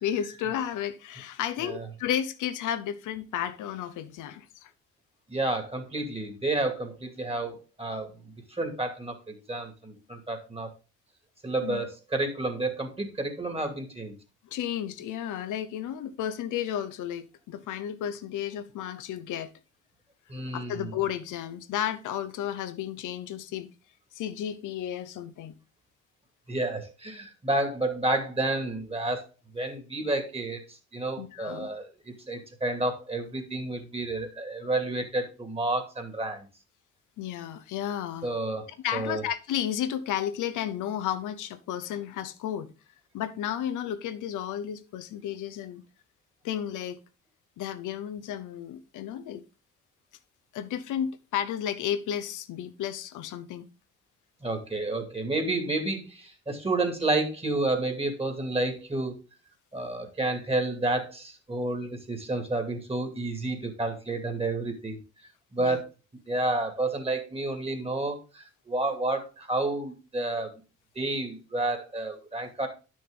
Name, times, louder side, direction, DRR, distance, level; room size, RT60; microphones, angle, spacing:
voice 1, 0.0-4.7 11.6-11.8 14.5-19.5 20.5-23.7 24.1-25.5 31.2-31.7 37.2-38.3 38.8-42.7 43.1-45.8 46.4-47.0 47.6-49.4 50.5-53.7 65.6-65.8, left 10 dB, 85° left, 0.8 m, -33 dB
voice 2, 5.3-10.7 11.4-14.1 20.3-20.9 26.5-29.2 29.5-36.4 38.2-38.7 38.9-39.2 54.4-59.2 59.7-65.0 65.5-65.9 66.3-70.5 71.0-72.7, right 2 dB, 20° right, 2.4 m, -30 dB
10.5 x 6.3 x 3.8 m
cardioid pair, 90°, 30 cm